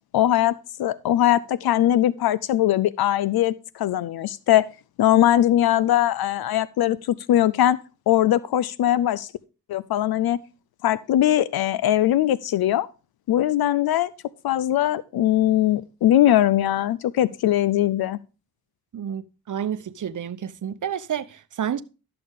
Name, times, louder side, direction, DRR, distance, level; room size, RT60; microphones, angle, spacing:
voice 1, 0.1-4.7 5.0-7.8 8.1-9.3 9.7-10.4 10.8-12.9 13.3-14.1 14.4-18.2, left 12 dB, 75° left, 0.5 m, -21 dB
voice 2, 18.9-21.8, right 9 dB, 50° right, 0.8 m, -30 dB
12.5 x 6.8 x 3.6 m
cardioid pair, 55°, 38 cm